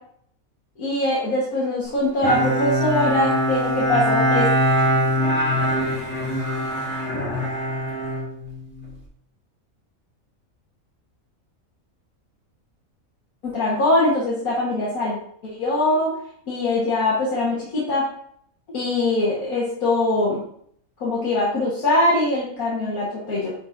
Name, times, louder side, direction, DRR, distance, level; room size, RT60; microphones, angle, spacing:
voice 1, 0.8-4.5 13.4-15.2 15.4-16.2 16.5-18.1 18.7-20.4 21.0-23.5, left 2 dB, 90° left, -7 dB, 2.0 m, -22 dB
Bowed string instrument, 2.2-8.9, equal, 5° left, 2.2 m, -22 dB
10.0 x 4.4 x 2.7 m, 0.65 s
omnidirectional pair, 1.5 m